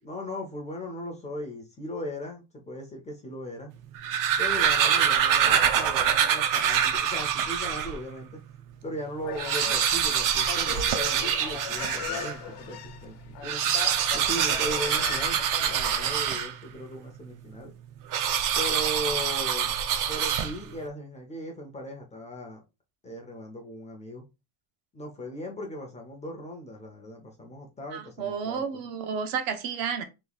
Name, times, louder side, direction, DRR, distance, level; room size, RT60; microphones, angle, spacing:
voice 1, 0.0-3.7 4.4-8.4 8.8-13.7 14.1-17.7 18.5-19.7 20.1-22.6 23.0-24.2 24.9-28.8, equal, 15° left, 0.5 m, -38 dB
sound 1, 3.8-8.0 8.5-8.6 8.8-8.9 9.3-12.4 13.3-16.8 18.1-20.8, right 9 dB, 45° right, 0.5 m, -25 dB
Human voice, 9.2-16.3, left 8 dB, 60° left, 0.8 m, -39 dB
voice 2, 27.9-30.0, right 6 dB, 65° right, 0.9 m, -31 dB
3.1 x 3.1 x 3.9 m
cardioid pair, 165°, 48 cm